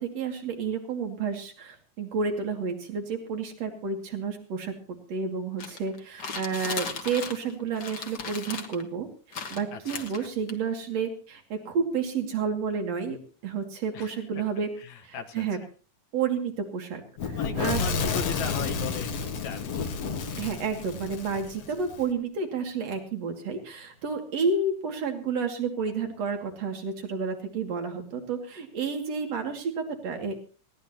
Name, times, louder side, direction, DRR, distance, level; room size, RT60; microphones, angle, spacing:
voice 1, 0.0-4.7 5.1-9.1 9.5-14.7 15.0-15.6 16.1-17.8 20.4-30.3, right 5 dB, 60° right, 4 dB, 3.5 m, -30 dB
sound 1, 5.6-7.5 7.8-8.8 9.3-10.5, left 5 dB, 40° left, 1.8 m, -36 dB
voice 2, 9.7-10.3 13.9-14.2 14.8-15.5 17.4-19.8 21.3-21.4, left 7 dB, 75° left, 6 dB, 2.8 m, -38 dB
Fire / Explosion, 17.2-22.0, left 5 dB, 60° left, 2.5 m, -31 dB
21.0 x 17.0 x 3.0 m, 0.37 s
omnidirectional pair, 3.4 m